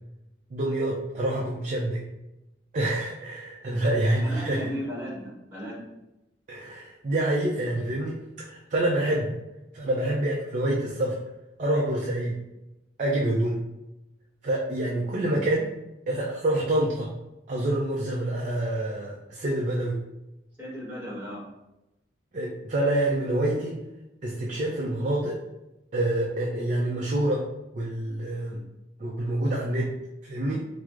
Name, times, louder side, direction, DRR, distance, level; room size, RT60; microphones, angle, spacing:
voice 1, 0.5-2.0 2.7-4.6 6.5-9.3 9.7-11.1 11.6-12.4 13.0-13.6 14.4-15.7 16.1-17.1 17.5-20.0 22.3-23.8 24.2-25.4 25.9-27.4 27.7-28.6 29.0-29.9 30.2-30.7, right 1 dB, 40° right, -3 dB, 0.4 m, -27 dB
voice 2, 4.2-5.8 20.6-21.4, equal, 10° right, -7 dB, 1.1 m, -35 dB
4.5 x 2.0 x 2.4 m, 0.94 s
head